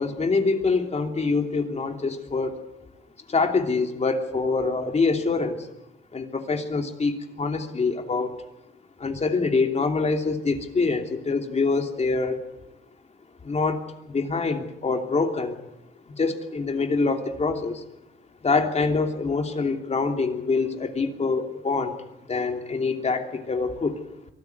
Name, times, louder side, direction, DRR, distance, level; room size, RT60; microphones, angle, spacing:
voice 1, 0.0-2.6 3.3-5.7 6.1-8.4 9.0-12.4 13.4-15.6 16.1-17.8 18.4-21.9 22.3-24.0, left 4 dB, 35° left, 5 dB, 2.9 m, -25 dB
23.5 x 13.5 x 9.5 m, 0.92 s
cardioid pair, 90°, 20 cm